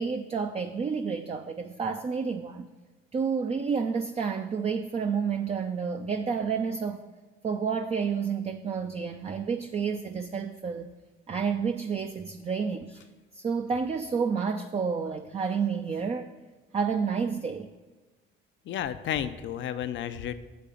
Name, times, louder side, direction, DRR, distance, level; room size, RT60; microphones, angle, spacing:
voice 1, 0.0-2.7 3.1-7.1 7.4-10.9 11.3-13.0 13.3-16.3 16.7-17.7, right 6 dB, 30° right, 6 dB, 0.5 m, -30 dB
voice 2, 18.7-20.3, left 10 dB, 70° left, 11 dB, 0.6 m, -32 dB
7.3 x 5.2 x 7.0 m, 1.3 s
cardioid pair, 90°, 20 cm